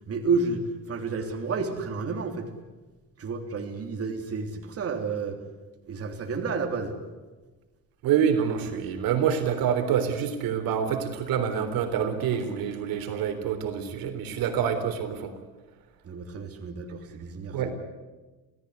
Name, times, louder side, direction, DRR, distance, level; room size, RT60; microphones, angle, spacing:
voice 1, 0.1-2.5 3.2-5.4 5.9-7.0 16.0-17.7, right 4 dB, 45° right, 4 dB, 3.5 m, -30 dB
voice 2, 8.0-15.3 17.5-17.7, right 8 dB, 80° right, 8 dB, 3.7 m, -26 dB
27.5 x 17.5 x 9.7 m, 1.2 s
cardioid pair, 135°, 34 cm